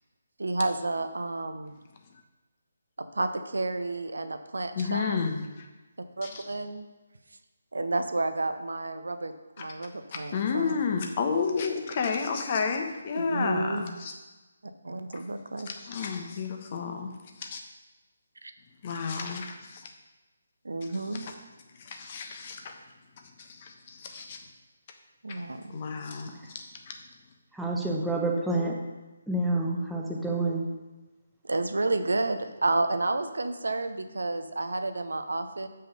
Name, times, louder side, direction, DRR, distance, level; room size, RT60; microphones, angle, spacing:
voice 1, 0.4-1.7 3.0-5.2 6.2-6.9 7.7-10.8 13.1-13.9 14.8-15.7 18.4-18.5 20.6-21.3 25.2-25.8 31.4-35.7, right 2 dB, 70° right, 8 dB, 0.7 m, -30 dB
voice 2, 4.8-5.7 6.2-6.4 9.6-9.7 10.1-14.1 15.7-17.1 17.4-17.6 18.8-19.9 21.1-21.3 21.9-22.7 23.4-24.4 25.3-25.4 25.7-26.9, left 5 dB, 35° left, 4 dB, 1.0 m, -31 dB
voice 3, 27.5-28.8 29.3-30.6, right 2 dB, ahead, -2 dB, 1.0 m, -28 dB
7.4 x 5.6 x 5.3 m, 1.1 s
figure-of-eight pair, 145°, 0 cm